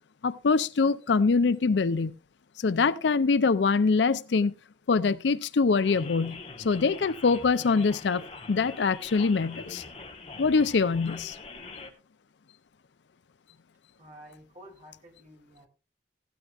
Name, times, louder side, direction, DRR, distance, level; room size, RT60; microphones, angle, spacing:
voice 1, 0.2-2.1 2.6-4.5 4.9-9.8 10.4-11.4, left 4 dB, 80° left, 0.5 m, -24 dB
sound 1, 5.8-11.9, left 3 dB, 35° left, 1.4 m, -43 dB
voice 2, 14.0-15.7, equal, 40° right, 3.3 m, -51 dB
16.5 x 12.5 x 2.4 m
head